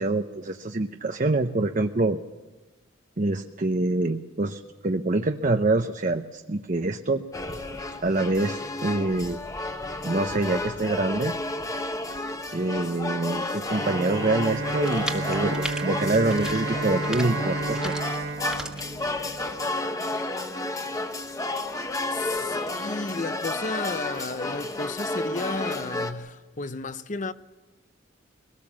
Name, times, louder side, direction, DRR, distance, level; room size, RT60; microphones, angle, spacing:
voice 1, 0.0-2.2 3.2-7.2 8.0-9.4 10.0-11.3 12.5-17.9, right 2 dB, 40° right, 0.8 m, -25 dB
sound 1, 7.3-26.1, left 2 dB, 15° left, 1.2 m, -31 dB
Bowed string instrument, 13.7-19.7, right 3 dB, 65° right, 1.2 m, -32 dB
sound 2, 14.5-19.6, right 1 dB, 5° right, 1.5 m, -39 dB
voice 2, 22.1-27.3, left 3 dB, 40° left, 0.7 m, -33 dB
22.0 x 18.5 x 7.4 m
head